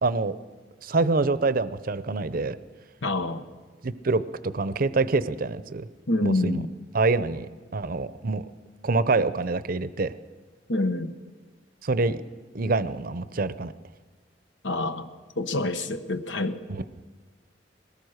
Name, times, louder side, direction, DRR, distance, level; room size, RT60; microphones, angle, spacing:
voice 1, 0.0-0.4 0.8-2.6 3.8-5.9 6.2-6.6 6.9-7.5 7.7-8.4 8.8-10.1 11.8-12.2 12.5-13.7 16.7-16.8, right 3 dB, 50° right, 14 dB, 0.7 m, -26 dB
voice 2, 3.0-3.4 6.1-6.7 10.7-11.1 14.6-15.1 15.4-16.6, left 2 dB, 90° left, 9 dB, 1.2 m, -26 dB
21.5 x 18.5 x 6.5 m, 1.4 s
head